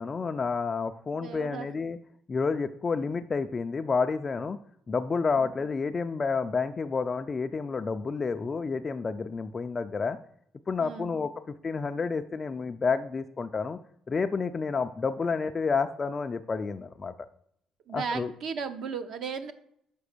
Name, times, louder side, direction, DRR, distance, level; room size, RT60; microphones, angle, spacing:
voice 1, 0.0-2.0 2.3-4.6 4.9-10.2 10.7-13.8 14.1-17.1 17.9-18.3, left 4 dB, 25° left, 8 dB, 0.3 m, -30 dB
voice 2, 1.1-1.7 5.4-5.5 10.8-11.1 17.9-19.5, right 5 dB, 50° right, 10 dB, 0.6 m, -35 dB
6.0 x 5.2 x 6.6 m, 0.70 s
cardioid pair, 165°, 0 cm